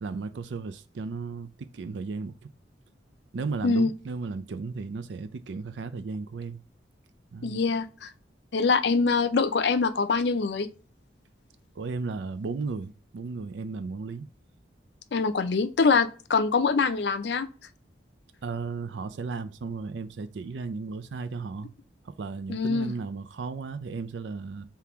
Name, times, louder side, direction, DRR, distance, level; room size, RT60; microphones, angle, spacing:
voice 1, 0.0-2.5 3.3-6.6 7.3-7.6 11.8-14.3 18.4-21.7 22.0-24.7, right 4 dB, 75° right, 0.4 m, -35 dB
voice 2, 7.4-8.1 8.5-10.7 15.1-17.5 22.5-22.9, left 4 dB, 70° left, 0.5 m, -24 dB
3.7 x 2.8 x 4.6 m
head